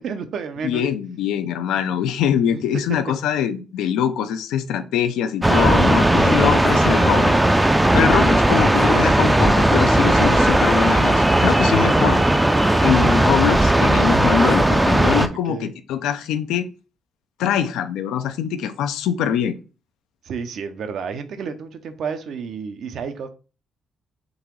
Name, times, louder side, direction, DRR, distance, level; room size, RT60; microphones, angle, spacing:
voice 1, 0.0-0.8 1.7-1.8 2.5-2.6 5.9-6.1 8.3-8.7 15.5-15.7 20.2-23.3, right 6 dB, 65° right, 0.7 m, -31 dB
voice 2, 0.6-7.6 7.9-12.2 12.8-16.7 17.4-19.6, left 9 dB, 90° left, 0.5 m, -23 dB
sound 1, 5.4-15.3, right 1 dB, 10° right, 0.4 m, -16 dB
3.9 x 2.9 x 4.6 m
cardioid pair, 90°, 0 cm